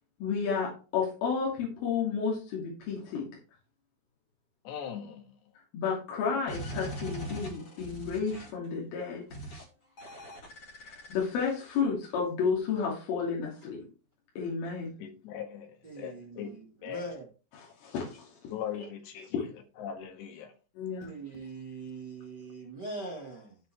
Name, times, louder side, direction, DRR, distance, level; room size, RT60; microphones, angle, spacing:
voice 1, 0.2-3.3 5.7-9.3 10.8-13.8 14.4-14.9 17.8-18.3 19.3-19.4 20.8-21.1, left 6 dB, 90° left, 5.2 m, -31 dB
voice 2, 4.7-5.4 15.0-16.5 16.8-17.1 18.5-19.2 19.8-20.5, left 9 dB, 70° left, 3.7 m, -39 dB
sound 1, 6.5-8.7 9.3-9.6 10.0-11.8, right 1 dB, 40° left, 2.5 m, -41 dB
voice 3, 15.8-17.3 21.0-23.6, right 3 dB, 70° right, 1.0 m, -42 dB
14.5 x 5.5 x 3.5 m
omnidirectional pair, 5.5 m